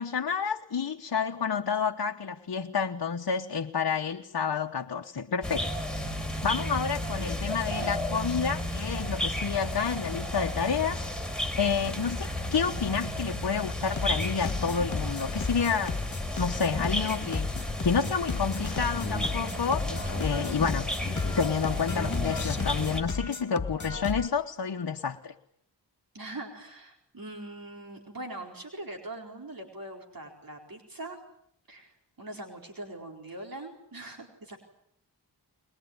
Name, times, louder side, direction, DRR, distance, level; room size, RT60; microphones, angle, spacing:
voice 1, 0.0-5.8 6.4-11.2 11.6-16.0 16.4-17.5 17.8-20.9 21.1-25.3, left 6 dB, 60° left, 1.2 m, -29 dB
sound 1, 5.4-23.0, left 1 dB, ahead, 4.1 m, -33 dB
voice 2, 7.2-7.9 11.9-12.1 20.4-20.7 26.1-31.2 31.7-34.6, right 2 dB, 55° right, 4.6 m, -42 dB
sound 2, 13.9-24.3, left 4 dB, 45° left, 2.2 m, -34 dB
22.5 x 22.5 x 9.6 m
wide cardioid pair, 95°, 42 cm